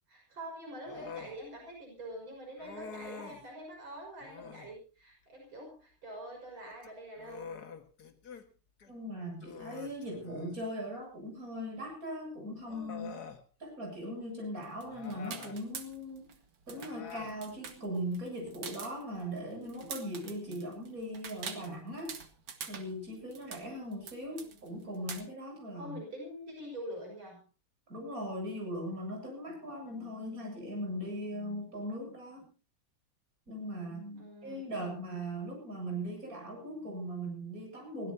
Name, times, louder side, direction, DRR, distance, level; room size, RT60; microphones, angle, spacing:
voice 1, 0.1-7.5 24.3-24.6 25.8-27.4 34.1-34.7, equal, 65° right, 0 dB, 6.8 m, -45 dB
Human voice, 0.8-1.4 2.6-3.5 4.2-4.7 6.7-8.5 8.8-8.9 9.4-10.6 11.8-11.9 12.6-13.4 14.8-15.6 16.7-17.4, left 6 dB, 50° left, 2.1 m, -47 dB
voice 2, 8.9-13.2 13.6-16.3 16.7-22.2 22.7-26.0 27.9-32.4 33.5-38.1, equal, 40° right, 1 dB, 8.4 m, -39 dB
sound 1, 14.6-16.4 16.6-25.2, right 6 dB, 85° right, 2.8 m, -45 dB
23.5 x 17.0 x 2.8 m, 0.34 s
omnidirectional pair, 2.3 m